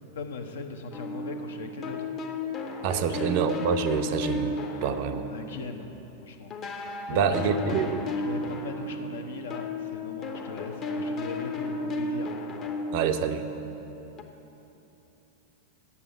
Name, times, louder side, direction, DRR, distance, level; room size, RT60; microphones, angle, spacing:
voice 1, 0.0-2.1 3.1-3.3 5.3-5.9 6.2-6.5 7.1-7.8 8.2-12.3, left 4 dB, 65° left, 4 dB, 0.8 m, -38 dB
sound 1, 0.9-6.1 6.5-14.2, left 2 dB, 30° left, 0.8 m, -34 dB
voice 2, 2.8-5.2 7.1-8.0 12.9-13.4, right 7 dB, 45° right, 8 dB, 0.5 m, -27 dB
8.4 x 6.9 x 8.2 m, 2.9 s
figure-of-eight pair, 90°, 0 cm